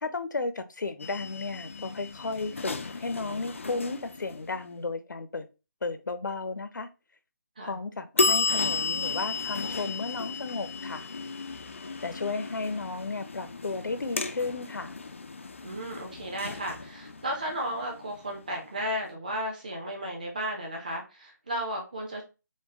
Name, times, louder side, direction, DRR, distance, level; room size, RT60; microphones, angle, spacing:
voice 1, 0.0-5.5 5.8-6.9 7.6-11.1 12.0-14.9, left 3 dB, 80° left, 0.7 m, -34 dB
sound 1, 1.0-4.7 8.2-18.8, left 4 dB, 45° left, 0.4 m, -34 dB
voice 2, 15.6-22.2, equal, 25° right, 0.8 m, -34 dB
4.5 x 2.2 x 2.9 m
hypercardioid pair, 180°, 10 cm